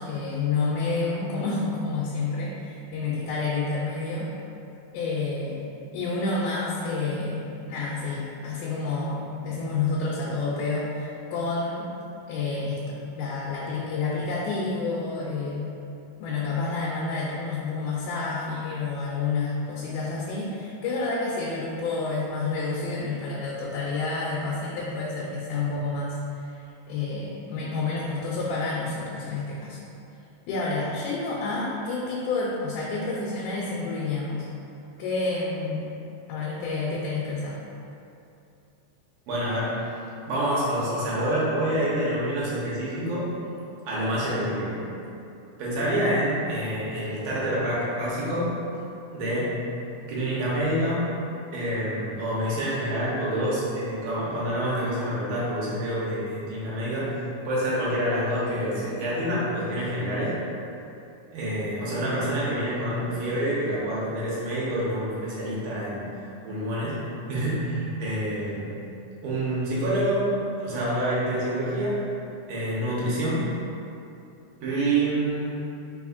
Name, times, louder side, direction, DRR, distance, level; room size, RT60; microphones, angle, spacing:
voice 1, 0.0-4.3 4.9-5.6 5.9-11.9 12.3-15.8 16.2-29.8 30.5-34.5 35.0-35.9 36.3-37.6, left 3 dB, 85° left, -5 dB, 2.1 m, -29 dB
voice 2, 39.3-39.9 40.3-43.4 43.9-44.8 45.6-48.6 49.1-49.6 50.1-51.1 51.5-57.1 57.4-60.4 61.3-66.1 66.4-67.0 67.3-68.7 69.2-70.3 70.6-72.0 72.5-73.5 74.6-75.5, right 1 dB, 65° right, -7 dB, 1.9 m, -27 dB
4.2 x 4.0 x 2.4 m, 2.7 s
omnidirectional pair, 3.5 m